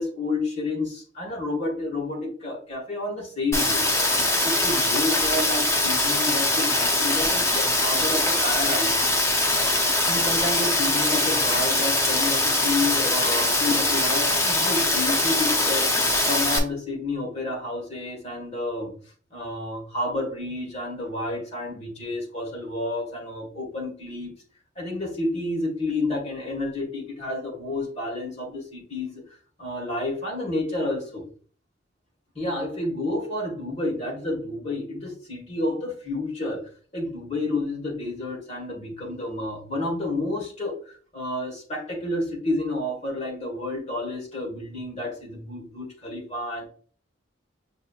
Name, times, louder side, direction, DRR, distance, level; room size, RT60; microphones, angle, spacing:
voice 1, 0.0-3.8 4.4-9.2 10.1-15.9 16.2-18.9 19.3-24.3 24.7-29.2 29.6-31.3 32.3-46.7, left 2 dB, 35° left, -1 dB, 1.7 m, -30 dB
Rain, 3.5-16.6, left 2 dB, 15° left, 0.7 m, -22 dB
6.3 x 2.7 x 2.4 m, 0.43 s
head